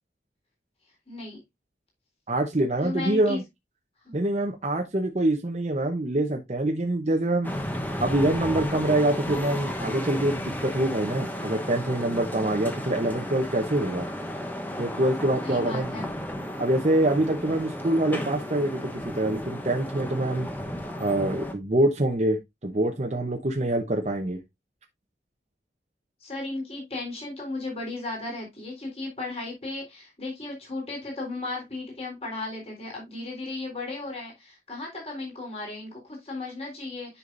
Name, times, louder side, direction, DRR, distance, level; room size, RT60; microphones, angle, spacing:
voice 1, 1.1-1.4 2.8-3.4 4.0-4.2 15.4-16.1 26.2-37.2, left 2 dB, 35° left, 3.8 m, -35 dB
voice 2, 2.3-3.4 4.1-7.5 8.0-14.1 14.8-15.9 16.6-20.5 21.0-22.4 22.6-24.4, right 1 dB, 40° right, 0.8 m, -25 dB
sound 1, 7.4-21.5, left 1 dB, 10° left, 1.0 m, -33 dB
9.6 x 5.7 x 2.6 m
head